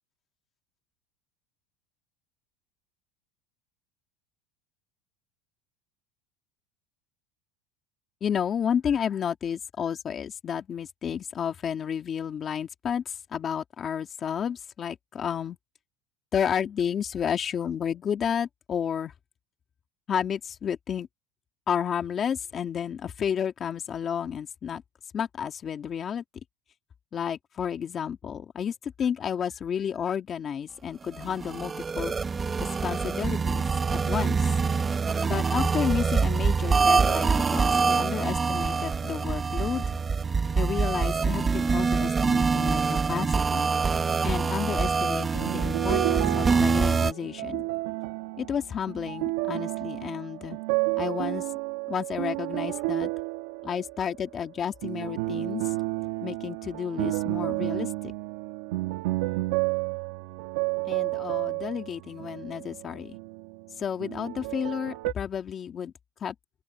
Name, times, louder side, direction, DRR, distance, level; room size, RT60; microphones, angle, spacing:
voice 1, 8.2-15.6 16.3-19.1 20.1-21.1 21.7-24.8 25.1-26.2 27.1-32.1 32.6-33.6 33.9-34.5 35.2-39.8 40.6-43.7 44.2-47.7 48.4-50.6 51.0-51.4 51.9-53.1 53.6-55.7 56.2-58.1 60.9-63.2 63.8-65.9 66.2-66.3, left 8 dB, 25° left, 2.3 m, -31 dB
sound 1, 31.1-47.1, right 5 dB, 15° right, 1.2 m, -25 dB
sound 2, 45.4-54.3 54.8-63.7 64.0-65.1, right 22 dB, 70° right, 1.6 m, -31 dB
open air
supercardioid pair, 155°, 0 cm